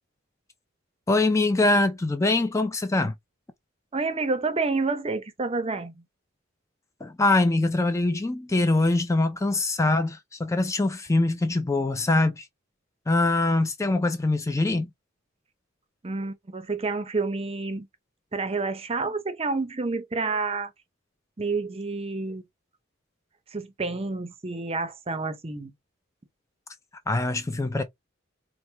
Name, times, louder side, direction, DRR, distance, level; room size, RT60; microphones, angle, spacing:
voice 1, 1.1-3.1 7.0-12.5 13.1-14.9 27.1-27.8, left 2 dB, 15° left, 0.4 m, -23 dB
voice 2, 3.9-6.0 16.0-17.9 18.3-20.7 21.4-22.4 23.5-25.7, right 3 dB, 30° right, 0.6 m, -29 dB
4.5 x 2.1 x 3.2 m
head